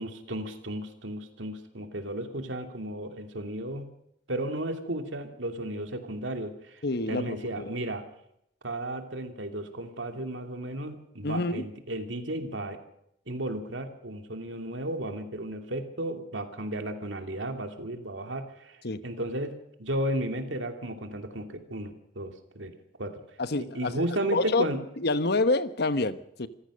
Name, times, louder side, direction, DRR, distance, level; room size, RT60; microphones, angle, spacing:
voice 1, 0.0-3.9 4.3-8.0 8.6-12.8 13.3-19.5 19.8-22.7 23.0-23.2 23.6-24.8, right 1 dB, 80° right, 6 dB, 2.8 m, -34 dB
voice 2, 6.8-7.8 11.2-11.7 18.8-19.0 23.4-24.0 24.3-24.7 25.0-26.5, left 2 dB, 60° left, 12 dB, 1.2 m, -27 dB
26.5 x 15.5 x 6.5 m, 0.76 s
head